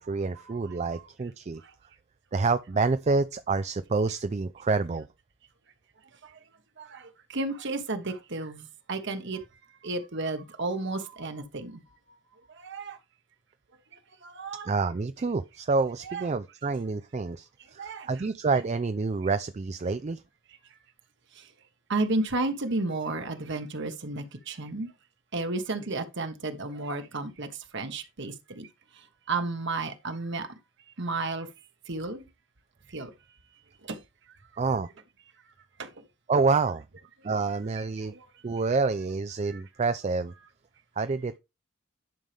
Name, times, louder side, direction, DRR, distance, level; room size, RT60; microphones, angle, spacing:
voice 1, 0.0-1.6 2.3-5.1 14.7-20.2 34.6-34.9 36.3-36.8 37.2-38.1 38.4-40.3 41.0-41.4, right 4 dB, 35° right, 0.4 m, -28 dB
voice 2, 6.8-9.4 9.8-11.8 12.6-13.0 14.2-14.7 16.1-16.2 17.8-18.1 21.4-21.5 21.9-24.9 25.3-27.5 27.7-28.7 29.3-30.5 31.0-31.5 31.9-32.3 32.9-33.1 33.8-34.0 35.8-35.9 38.1-38.2 39.5-39.6, right 2 dB, 60° right, 1.2 m, -32 dB
10.5 x 5.5 x 3.4 m
head